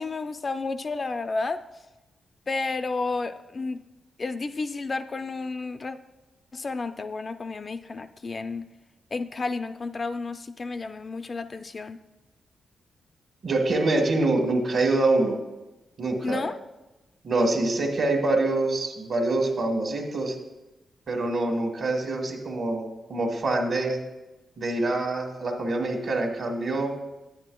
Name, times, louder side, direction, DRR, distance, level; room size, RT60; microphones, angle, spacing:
voice 1, 0.0-1.6 2.5-3.8 4.2-6.0 6.5-8.7 9.1-12.0 16.2-16.6, left 3 dB, 35° left, 9 dB, 0.3 m, -31 dB
voice 2, 13.4-15.4 16.0-16.4 17.2-20.4 21.1-24.0 24.6-26.9, right 2 dB, 55° right, 3 dB, 1.3 m, -25 dB
9.8 x 9.4 x 2.2 m, 1.0 s
wide cardioid pair, 120°, 0 cm